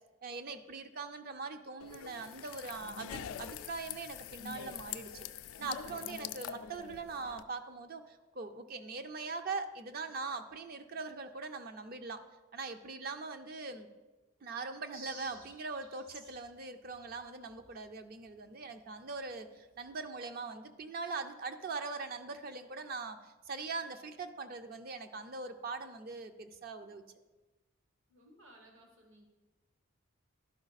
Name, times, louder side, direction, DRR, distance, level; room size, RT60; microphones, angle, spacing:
voice 1, 0.2-5.3 5.6-12.2 12.5-13.9 14.4-27.0, right 4 dB, 45° right, 8 dB, 0.4 m, -42 dB
sound 1, 1.8-7.4, left 9 dB, 85° left, 0.3 m, -44 dB
sound 2, 14.9-16.5 16.8-18.4 18.7-18.8 19.1-19.3 19.6-19.9, right 3 dB, 90° right, 1.5 m, -55 dB
voice 2, 28.1-29.2, right 1 dB, 70° right, 1 dB, 1.2 m, -59 dB
11.5 x 4.8 x 4.0 m, 1.2 s
head